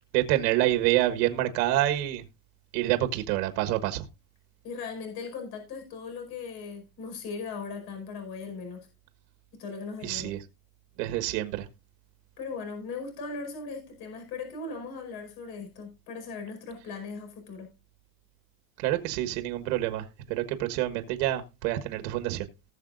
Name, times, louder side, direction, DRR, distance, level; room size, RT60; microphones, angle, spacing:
voice 1, 0.1-2.2 2.7-4.0 10.0-10.4 11.0-11.7 18.8-22.5, right 14 dB, 90° right, 7 dB, 1.5 m, -27 dB
voice 2, 4.6-8.9 9.5-10.3 12.4-17.7, left 4 dB, 50° left, 4 dB, 5.1 m, -38 dB
18.5 x 6.8 x 2.5 m, 0.27 s
cardioid pair, 165°, 47 cm